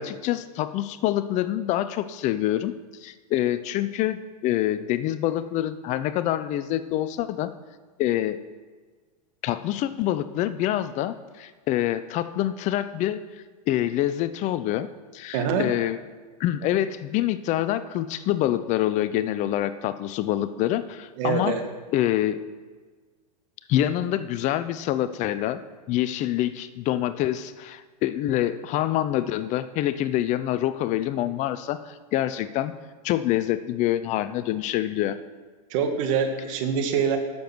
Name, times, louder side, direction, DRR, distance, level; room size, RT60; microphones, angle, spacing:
voice 1, 0.0-2.7 3.0-7.5 8.0-8.4 9.4-14.9 15.1-16.0 16.4-21.5 21.9-22.4 23.7-25.6 25.9-32.7 33.0-35.2, left 13 dB, 35° left, 13 dB, 0.5 m, -26 dB
voice 2, 15.3-15.6 21.2-21.6 35.7-37.2, right 6 dB, 55° right, 6 dB, 1.6 m, -24 dB
10.5 x 6.9 x 6.1 m, 1.4 s
hypercardioid pair, 110°, 20 cm